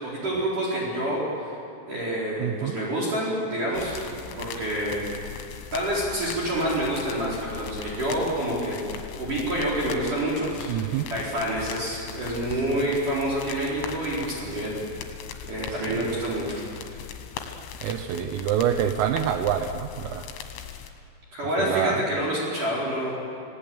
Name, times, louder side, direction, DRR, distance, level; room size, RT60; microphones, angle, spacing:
voice 1, 0.0-1.2 1.9-5.0 5.7-8.8 9.1-14.8 15.4-16.6 21.3-23.2, right 1 dB, 40° right, -5 dB, 5.6 m, -28 dB
voice 2, 2.4-2.8 10.7-11.1 15.9-16.1 17.8-20.3 21.6-22.0, right 10 dB, 80° right, 7 dB, 3.5 m, -26 dB
sound 1, 3.7-20.9, left 8 dB, 75° left, 4.1 m, -39 dB
28.5 x 18.0 x 8.9 m, 2.5 s
omnidirectional pair, 5.9 m